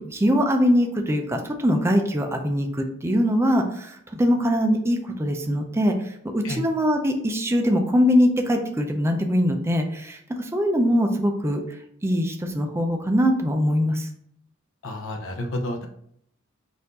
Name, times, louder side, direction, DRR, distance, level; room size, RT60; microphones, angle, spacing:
voice 1, 0.0-11.6 12.0-14.1, equal, 15° right, 4 dB, 0.4 m, -22 dB
voice 2, 14.8-15.9, left 1 dB, 70° left, 3 dB, 0.7 m, -30 dB
4.3 x 2.6 x 4.0 m, 0.69 s
head